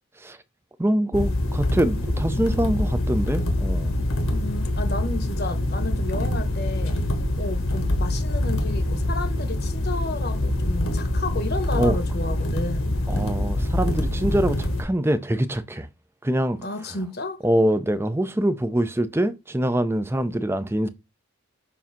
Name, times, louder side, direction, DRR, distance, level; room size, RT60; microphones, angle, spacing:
voice 1, 0.8-3.9 11.8-12.0 13.1-15.9 16.2-16.6 17.4-20.9, right 1 dB, 10° right, 0.5 m, -24 dB
sound 1, 1.1-14.8, left 1 dB, 75° left, 1.4 m, -25 dB
voice 2, 4.3-7.0 7.4-13.0 16.6-17.4, left 2 dB, 45° left, 1.1 m, -32 dB
7.2 x 2.7 x 5.8 m
head